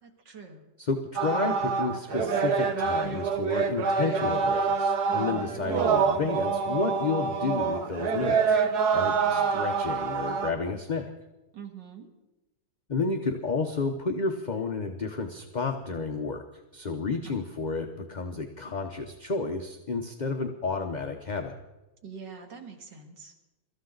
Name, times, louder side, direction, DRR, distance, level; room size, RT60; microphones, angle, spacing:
voice 1, 0.0-0.7 5.1-5.5 8.9-9.6 11.5-12.1 17.2-17.3 22.0-23.3, right 6 dB, 85° right, 3 dB, 2.7 m, -44 dB
voice 2, 0.8-8.6 8.9-11.1 12.9-16.4 16.7-21.5, left 4 dB, 35° left, 4 dB, 0.8 m, -31 dB
sound 1, 1.2-10.5, right 5 dB, 65° right, 1.6 m, -26 dB
24.0 x 14.0 x 3.9 m, 1.0 s
omnidirectional pair, 1.9 m